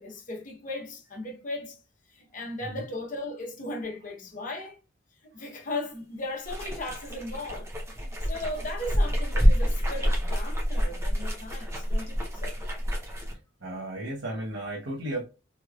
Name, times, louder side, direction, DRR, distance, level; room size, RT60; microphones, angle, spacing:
voice 1, 0.0-1.8 2.1-4.8 5.2-7.7 8.2-12.6, left 2 dB, 45° left, 1.0 m, -37 dB
sound 1, 6.5-13.3, equal, 15° right, 0.9 m, -27 dB
voice 2, 13.3-15.2, right 1 dB, 85° right, 0.9 m, -35 dB
3.3 x 3.0 x 2.4 m
head